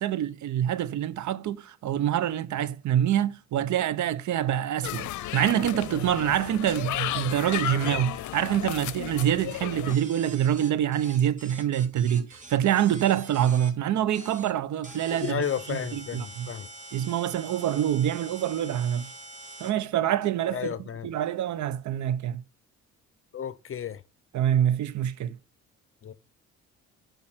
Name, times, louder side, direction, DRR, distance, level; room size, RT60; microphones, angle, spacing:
voice 1, 0.0-16.5 16.9-19.1 19.6-22.4 24.3-25.3, right 11 dB, 70° right, 0.8 m, -26 dB
sound 1, 4.8-10.0, left 14 dB, 75° left, 0.7 m, -33 dB
sound 2, 9.9-13.7 14.1-14.5 14.8-19.7, right 2 dB, 25° right, 2.8 m, -45 dB
voice 2, 15.1-16.7 20.5-21.1 23.3-24.0 26.0-26.1, left 8 dB, 45° left, 0.8 m, -32 dB
8.8 x 5.5 x 5.7 m
cardioid pair, 90°, 30 cm